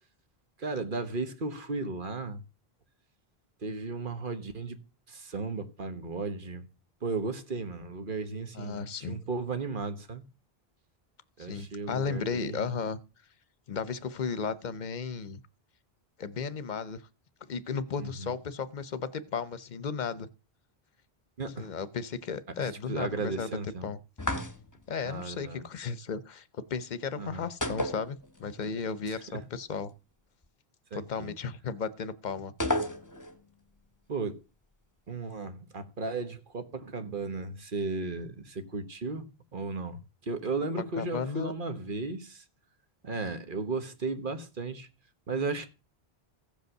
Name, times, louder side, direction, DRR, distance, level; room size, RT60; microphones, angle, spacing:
voice 1, 0.6-2.4 3.6-4.8 5.1-6.7 7.0-10.2 11.4-12.7 18.0-18.3 21.4-21.7 22.6-23.9 25.0-25.6 27.2-27.4 29.1-29.4 30.9-31.3 34.1-34.4 35.1-42.4 43.0-44.9 45.3-45.7, right 3 dB, 55° right, 1.4 m, -35 dB
voice 2, 8.5-9.2 11.4-13.0 13.7-15.4 16.2-17.0 17.5-20.3 21.6-23.5 23.8-24.0 24.9-29.9 30.9-32.5 41.0-41.5, left 5 dB, 50° left, 0.9 m, -34 dB
sound 1, 24.2-24.9 27.6-28.7 28.9-29.0 32.6-33.4, left 1 dB, 20° left, 1.1 m, -32 dB
15.5 x 5.4 x 6.4 m
omnidirectional pair, 1.0 m